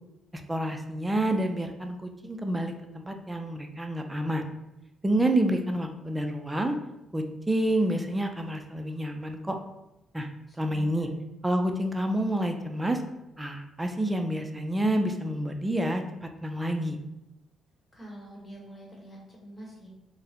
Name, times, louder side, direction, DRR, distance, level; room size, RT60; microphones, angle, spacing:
voice 1, 0.5-4.4 5.0-6.7 7.1-9.6 10.1-10.3 10.6-11.1 11.4-13.0 13.4-16.0 16.4-17.0, right 1 dB, 15° right, 5 dB, 0.4 m, -28 dB
voice 2, 10.5-11.1 17.9-19.9, right 1 dB, 20° left, -3 dB, 1.2 m, -46 dB
3.8 x 2.1 x 2.8 m, 0.92 s
cardioid pair, 90°, 0 cm